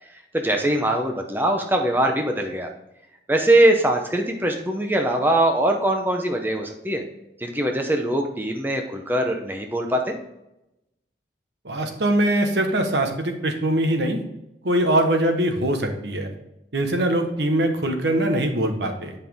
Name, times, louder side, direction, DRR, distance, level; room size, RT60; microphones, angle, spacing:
voice 1, 0.3-2.7 3.3-7.0 7.4-10.0, right 1 dB, 10° right, 3 dB, 0.7 m, -22 dB
voice 2, 11.6-14.2 14.6-16.3 16.7-19.1, right 1 dB, 80° right, 5 dB, 1.2 m, -22 dB
8.3 x 5.5 x 3.5 m, 0.88 s
head